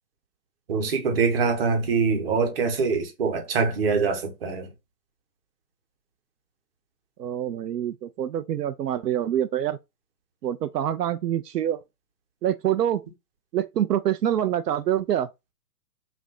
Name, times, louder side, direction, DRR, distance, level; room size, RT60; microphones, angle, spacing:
voice 1, 0.7-4.7, right 5 dB, 40° right, 1.0 m, -24 dB
voice 2, 7.2-9.8 10.4-11.8 12.4-13.0 13.5-15.3, right 10 dB, 80° right, 0.6 m, -26 dB
3.4 x 2.5 x 3.7 m
hypercardioid pair, 155°, 47 cm